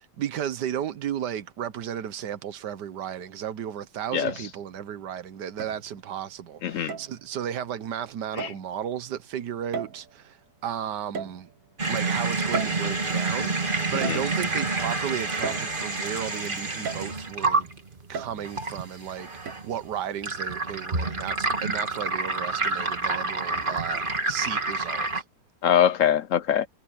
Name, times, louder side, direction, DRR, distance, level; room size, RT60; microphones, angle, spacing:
voice 1, 0.0-10.4 10.6-11.5 11.9-17.7 18.1-25.2, right 9 dB, 85° right, 1.6 m, -34 dB
sound 1, 3.2-3.3 4.3-4.9 5.6-6.2 6.9-7.2 8.4-8.7 9.7-10.3 11.1-11.8 12.5-13.4 14.0-14.7 15.4-16.2 16.8-17.4 18.1-18.7 19.5-19.6, right 6 dB, 55° right, 1.5 m, -36 dB
voice 2, 6.6-7.0 8.4-8.5 13.9-14.2 25.6-26.7, left 9 dB, 65° left, 0.8 m, -23 dB
sound 2, 11.8-25.2, right 3 dB, 30° right, 2.1 m, -28 dB
omnidirectional pair, 1.8 m